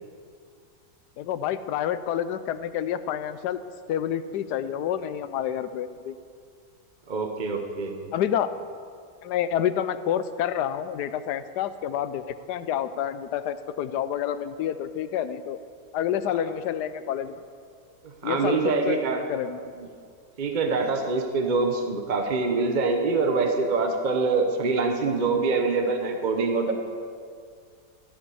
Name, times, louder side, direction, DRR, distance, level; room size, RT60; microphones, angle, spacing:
voice 1, 1.2-3.6 3.9-6.1 8.1-8.5 9.2-15.6 15.9-17.3 18.2-19.0 19.3-19.6, left 10 dB, 85° left, 13 dB, 1.2 m, -28 dB
voice 2, 7.1-8.1 18.0-19.2 19.8-19.9 20.4-26.7, right 4 dB, 35° right, 4 dB, 0.8 m, -25 dB
14.0 x 8.0 x 7.0 m, 2.2 s
omnidirectional pair, 1.7 m